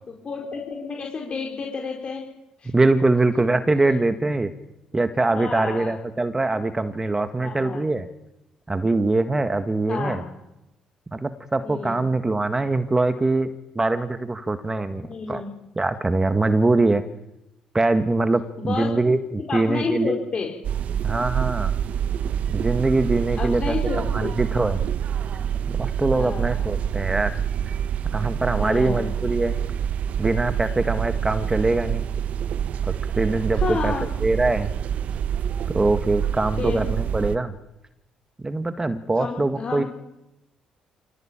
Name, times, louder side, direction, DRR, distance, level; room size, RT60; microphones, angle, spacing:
voice 1, 0.2-2.2 2.6-2.7 5.3-5.9 7.4-7.8 9.9-10.2 11.6-12.1 15.1-15.5 18.6-19.1 19.4-20.5 23.4-24.3 26.1-26.7 28.5-29.0 33.5-34.0 36.6-36.8 39.2-39.9, left 4 dB, 45° left, 1 dB, 5.0 m, -30 dB
voice 2, 2.7-4.5 4.9-8.1 8.7-10.2 11.1-13.5 13.7-15.4 15.7-17.0 17.7-20.1 21.0-21.7 22.5-23.8 24.1-24.8 25.7-27.4 28.1-29.6 30.2-32.1 33.2-33.9 34.2-34.7 35.7-37.5 38.4-39.8, right 2 dB, 20° right, 9 dB, 1.7 m, -23 dB
sound 1, 20.6-37.4, right 9 dB, 65° right, 1.3 m, -26 dB
27.0 x 17.5 x 8.9 m, 0.92 s
supercardioid pair, 75°, 3 cm